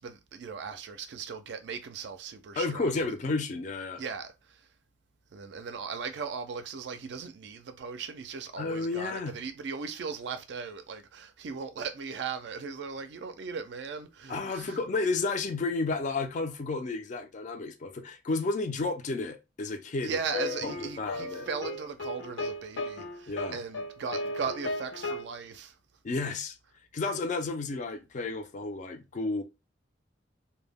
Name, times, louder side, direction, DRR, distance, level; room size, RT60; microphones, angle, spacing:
voice 1, 0.0-2.9 4.0-4.7 5.3-14.8 20.0-25.8, right 5 dB, 65° right, 0.4 m, -38 dB
voice 2, 2.6-4.0 8.6-9.4 14.3-20.2 20.6-21.5 23.3-23.6 26.0-26.6 26.9-29.4, left 3 dB, 40° left, 0.4 m, -32 dB
sound 1, 20.3-25.2, left 2 dB, 90° left, 0.6 m, -35 dB
2.1 x 2.0 x 3.4 m
head